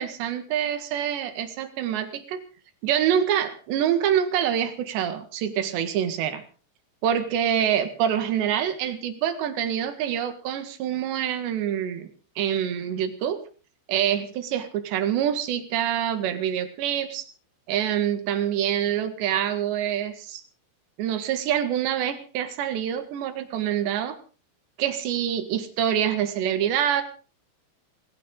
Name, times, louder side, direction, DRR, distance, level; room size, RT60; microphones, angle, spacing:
voice 1, 0.0-2.4 2.8-6.4 7.0-12.1 12.4-13.4 13.9-17.3 17.7-20.4 21.0-24.2 24.8-27.0, right 9 dB, 70° right, 9 dB, 3.8 m, -26 dB
19.5 x 19.0 x 3.9 m, 0.38 s
omnidirectional pair, 5.5 m